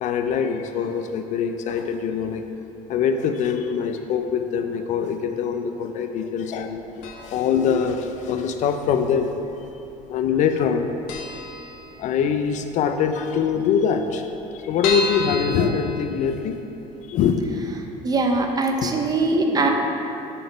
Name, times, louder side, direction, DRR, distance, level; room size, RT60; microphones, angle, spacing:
voice 1, 0.0-2.4 2.9-9.3 10.1-10.9 12.0-16.6 17.1-17.4 18.8-18.9, left 7 dB, 55° left, 7 dB, 0.4 m, -23 dB
sound 1, 7.0-7.6 7.8-7.9 8.8-9.5 9.8-10.0 10.3-10.4 10.7-10.8 11.1-12.4 12.8-12.9 13.1-13.2 13.4-13.5 14.0-16.7 17.1-17.2 17.6-17.7, left 2 dB, 80° left, 0.8 m, -31 dB
voice 2, 18.0-19.7, right 3 dB, 25° right, 3 dB, 0.5 m, -22 dB
5.8 x 3.5 x 5.1 m, 2.9 s
cardioid pair, 115°, 15 cm